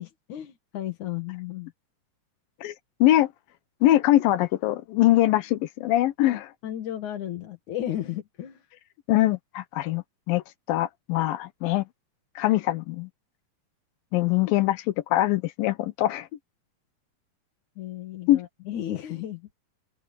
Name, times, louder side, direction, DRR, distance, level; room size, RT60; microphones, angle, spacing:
voice 1, 0.0-1.7 6.3-8.7 17.8-19.5, left 12 dB, 65° left, 3.0 m, -34 dB
voice 2, 3.8-6.5 9.1-10.4 10.7-11.9 12.4-13.1 14.1-14.9 15.1-16.3 18.3-18.4, left 15 dB, 85° left, 2.7 m, -22 dB
open air
omnidirectional pair, 4.0 m